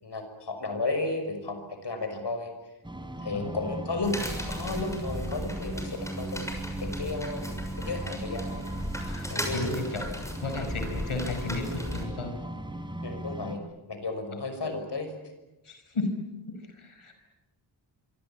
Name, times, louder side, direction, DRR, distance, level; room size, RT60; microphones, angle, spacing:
voice 1, 0.0-2.5 3.2-4.2 4.5-6.4 6.8-8.6 9.3-9.7 13.0-13.6 13.9-15.1, left 3 dB, 55° left, 7 dB, 6.0 m, -33 dB
sound 1, 2.8-13.6, right 1 dB, 10° right, 3.4 m, -38 dB
sound 2, 4.0-12.0, equal, 5° left, 6.6 m, -37 dB
voice 2, 9.0-10.0 10.4-12.3 15.6-16.2 16.5-17.1, left 3 dB, 85° left, 5 dB, 5.2 m, -34 dB
25.5 x 25.0 x 8.8 m, 1.0 s
wide cardioid pair, 115°, 48 cm